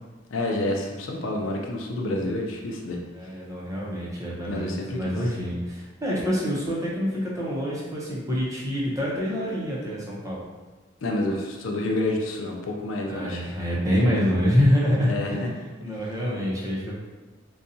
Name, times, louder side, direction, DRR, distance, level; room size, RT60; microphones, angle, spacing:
voice 1, 0.3-3.0 4.5-5.2 11.0-13.6 15.0-15.5 15.9-16.0, left 1 dB, 80° left, 1 dB, 0.5 m, -29 dB
voice 2, 3.1-10.4 13.1-17.0, equal, 15° right, -6 dB, 0.7 m, -26 dB
4.0 x 2.3 x 2.7 m, 1.2 s
head